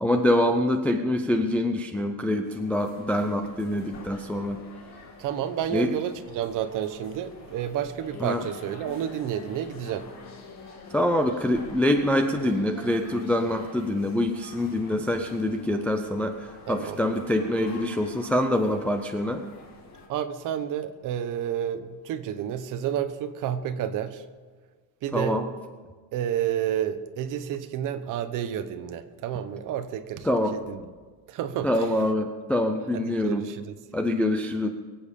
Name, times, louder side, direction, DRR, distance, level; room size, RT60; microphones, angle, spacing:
voice 1, 0.0-4.6 5.7-5.9 8.2-8.4 10.9-19.4 25.1-25.4 30.2-30.6 31.6-33.4 33.9-34.7, left 1 dB, 5° left, 4 dB, 0.3 m, -25 dB
sound 1, 2.4-20.1, left 3 dB, 40° left, 2.4 m, -46 dB
voice 2, 5.2-10.1 14.9-15.0 16.7-17.0 20.1-24.2 25.0-25.4 26.1-30.8 31.3-32.0 32.9-33.8, right 9 dB, 45° right, 10 dB, 1.0 m, -30 dB
22.5 x 8.7 x 5.4 m, 1.5 s
cardioid pair, 170°, 42 cm